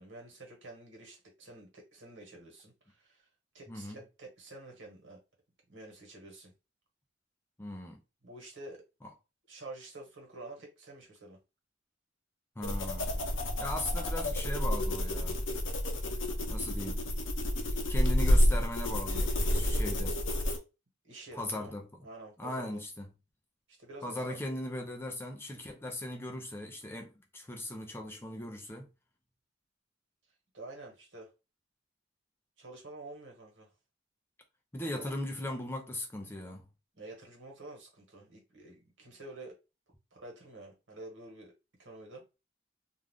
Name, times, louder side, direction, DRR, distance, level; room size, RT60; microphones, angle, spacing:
voice 1, 0.0-3.3 3.5-5.2 5.7-6.5 8.2-8.9 9.5-11.4 21.0-21.7 22.0-22.8 23.7-24.4 30.5-31.3 32.6-33.7 34.8-35.1 36.9-39.6 40.1-41.5 41.8-42.2, right 2 dB, 75° right, 1.3 m, -49 dB
voice 2, 3.7-4.0 7.6-8.0 12.6-13.1 13.6-15.4 16.5-17.0 17.9-20.2 21.3-21.9 22.4-23.1 24.0-28.9 34.7-36.7, left 1 dB, 10° left, 0.4 m, -38 dB
sound 1, 12.6-20.6, equal, 80° left, 0.7 m, -29 dB
2.4 x 2.4 x 3.5 m
head